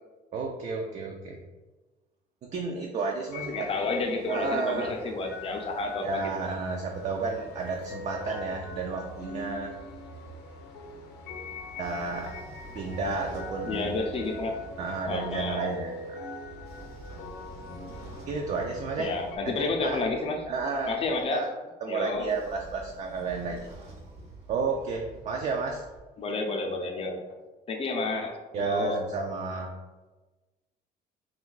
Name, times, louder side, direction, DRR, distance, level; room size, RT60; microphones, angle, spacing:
voice 1, 0.3-1.4 2.4-3.7 4.3-4.9 6.0-9.7 11.8-12.3 12.7-13.9 14.8-16.2 18.3-19.5 19.8-20.0 20.5-20.9 21.3-21.5 21.8-23.6 24.5-25.8 28.5-29.7, right 4 dB, 45° right, 1 dB, 0.4 m, -31 dB
sound 1, 3.3-19.4, left 2 dB, 85° left, 0.5 m, -42 dB
voice 2, 3.5-6.3 8.2-8.4 13.7-14.6 15.1-15.7 19.0-20.4 20.9-21.4 21.9-22.3 26.2-27.2 27.7-29.0, left 3 dB, 35° left, 3 dB, 0.5 m, -30 dB
Train / Sliding door, 11.6-15.6 16.4-21.3 22.1-26.0, right 2 dB, 65° right, 0.7 m, -48 dB
2.5 x 2.3 x 3.8 m, 1.2 s
cardioid pair, 110°, 17 cm